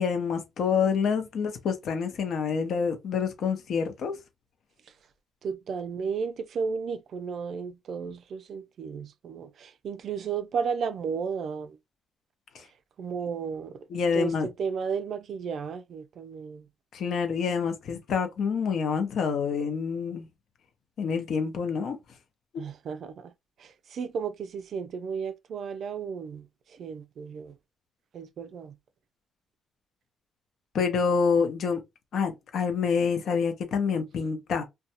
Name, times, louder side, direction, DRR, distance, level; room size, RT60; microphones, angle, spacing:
voice 1, 0.0-4.1 13.9-14.5 16.9-20.3 21.0-22.0 30.7-31.8 32.1-34.6, left 6 dB, 65° left, 0.8 m, -27 dB
voice 2, 5.4-11.8 13.0-13.9 14.1-16.7 22.6-23.3 23.6-27.6 28.1-28.8, right 6 dB, 60° right, 0.4 m, -34 dB
2.5 x 2.3 x 2.8 m
cardioid pair, 90°, 0 cm